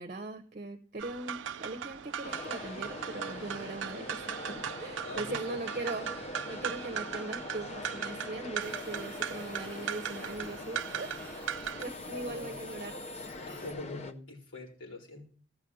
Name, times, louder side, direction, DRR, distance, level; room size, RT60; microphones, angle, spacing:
voice 1, 0.0-6.1 6.5-11.1 11.7-13.0 13.4-13.6, right 2 dB, 40° right, 7 dB, 0.8 m, -40 dB
sound 1, 1.0-11.8, right 8 dB, 70° right, 0.5 m, -39 dB
sound 2, 2.2-14.1, left 2 dB, 35° left, 0.6 m, -43 dB
voice 2, 5.0-5.6 12.1-12.6 13.5-15.3, left 2 dB, 75° left, -3 dB, 4.4 m, -43 dB
sound 3, 8.6-13.7, left 1 dB, 10° left, 2.7 m, -51 dB
14.5 x 6.0 x 5.5 m, 0.43 s
head